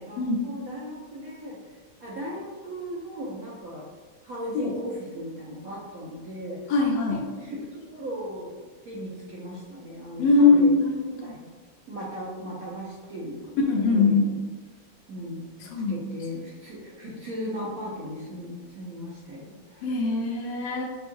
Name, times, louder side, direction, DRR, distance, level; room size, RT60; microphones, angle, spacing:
voice 1, 0.0-1.6 2.0-3.9 4.2-6.7 7.2-10.7 11.2-11.5 11.9-13.5 13.9-14.3 15.1-19.9, equal, 70° right, -5 dB, 0.8 m, -37 dB
voice 2, 6.7-7.2 10.2-11.3 13.7-14.3 15.7-16.0 19.8-20.8, left 3 dB, 70° left, -3 dB, 1.1 m, -22 dB
5.5 x 2.4 x 2.5 m, 1.3 s
omnidirectional pair, 2.3 m